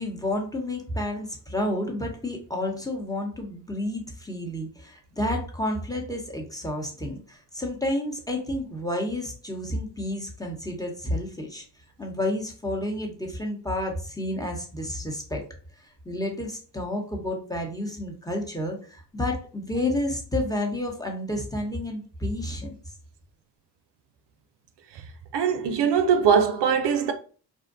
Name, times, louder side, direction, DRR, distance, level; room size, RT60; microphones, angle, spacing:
voice 1, 0.0-11.6 12.0-15.4 15.8-22.7, left 1 dB, 10° left, 0.9 m, -30 dB
voice 2, 25.3-27.1, right 7 dB, 65° right, 0.5 m, -21 dB
2.6 x 2.2 x 2.5 m
supercardioid pair, 55°, 43 cm